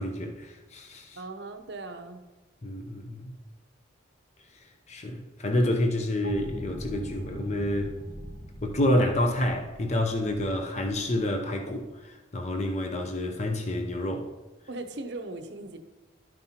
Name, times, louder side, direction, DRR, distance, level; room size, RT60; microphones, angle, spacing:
voice 1, 0.0-1.2 2.6-3.3 4.9-7.9 8.6-14.3, left 1 dB, 35° left, 0.6 m, -28 dB
voice 2, 1.2-2.2 14.7-15.8, right 2 dB, 60° right, 0.7 m, -38 dB
sound 1, 6.2-11.9, equal, 65° left, 1.2 m, -42 dB
12.0 x 5.4 x 2.8 m
head